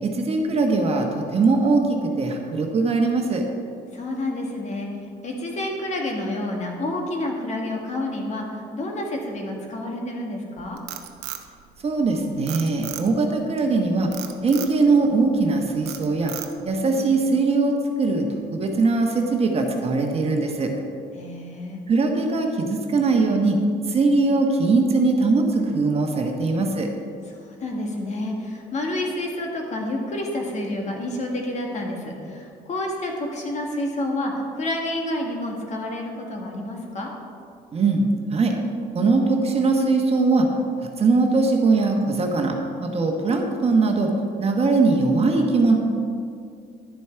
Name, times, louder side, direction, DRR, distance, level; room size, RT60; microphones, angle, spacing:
voice 1, 0.0-3.4 11.8-14.1 14.4-16.3 16.6-20.7 21.9-23.6 23.9-26.9 37.7-38.0 38.3-38.5 38.9-40.5 41.0-42.5 42.8-44.1 44.4-45.8, right 3 dB, 35° right, 2 dB, 1.2 m, -21 dB
voice 2, 3.9-4.9 5.2-10.8 16.8-17.1 21.2-21.8 27.3-37.1, left 1 dB, 45° left, 1 dB, 1.7 m, -29 dB
Frog, 10.6-12.1 12.5-13.3 14.1-14.8 15.3-15.5 15.9-16.8, right 12 dB, 85° right, 0.8 m, -35 dB
11.0 x 7.1 x 4.6 m, 2.3 s
cardioid pair, 110°, 17 cm